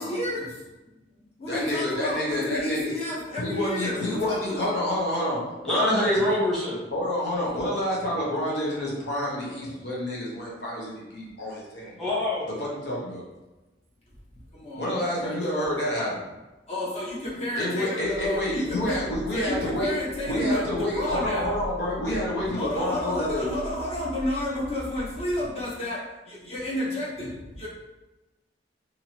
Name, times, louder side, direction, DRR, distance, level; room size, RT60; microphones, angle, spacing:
voice 1, 0.0-0.5 1.4-4.7 14.5-15.7 16.7-19.0 19.3-21.5 22.6-26.0 26.3-27.7, left 1 dB, 35° left, -6 dB, 0.9 m, -31 dB
voice 2, 1.5-2.9 3.4-5.4 5.6-6.1 6.9-12.0 12.6-13.2 14.8-16.2 17.6-19.9 20.3-23.5, left 1 dB, 70° left, -5 dB, 0.9 m, -28 dB
voice 3, 5.4-6.8 8.9-9.0 9.6-9.7 12.0-12.5 18.6-18.8, left 1 dB, ahead, -9 dB, 1.1 m, -26 dB
sound 1, 18.0-25.5, equal, 25° right, 0.4 m, -41 dB
2.8 x 2.6 x 2.9 m, 1.1 s
head